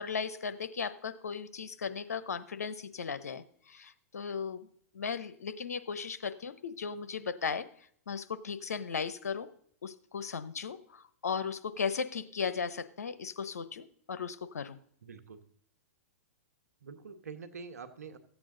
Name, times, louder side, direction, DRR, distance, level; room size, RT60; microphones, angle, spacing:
voice 1, 0.0-4.7 4.9-7.7 8.1-9.5 9.8-14.8, left 6 dB, 85° left, 12 dB, 0.8 m, -36 dB
voice 2, 15.0-15.4 16.8-18.2, right 5 dB, 85° right, 9 dB, 1.3 m, -46 dB
14.5 x 8.4 x 3.8 m, 0.64 s
hypercardioid pair, 120°, 8 cm